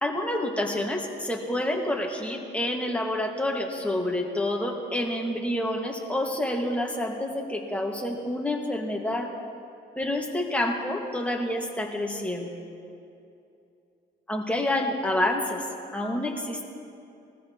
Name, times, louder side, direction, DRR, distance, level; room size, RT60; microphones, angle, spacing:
voice 1, 0.0-9.3 10.0-12.5 14.3-15.7 15.9-16.6, left 1 dB, 5° left, 0 dB, 1.9 m, -28 dB
21.0 x 14.5 x 3.1 m, 2.6 s
cardioid pair, 90°, 20 cm